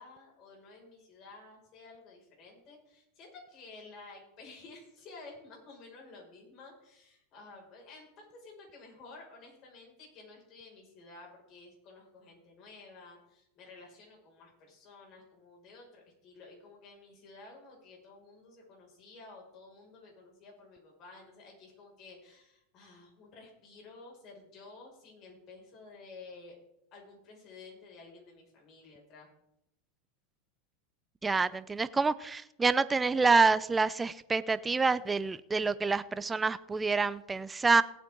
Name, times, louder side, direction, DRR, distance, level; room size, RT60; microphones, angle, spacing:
voice 1, 0.0-26.6 26.9-29.3, left 3 dB, 45° left, 6.1 m, -52 dB
voice 2, 31.2-37.8, right 4 dB, 15° right, 0.6 m, -27 dB
18.0 x 8.7 x 3.9 m
hypercardioid pair, 110°, 0 cm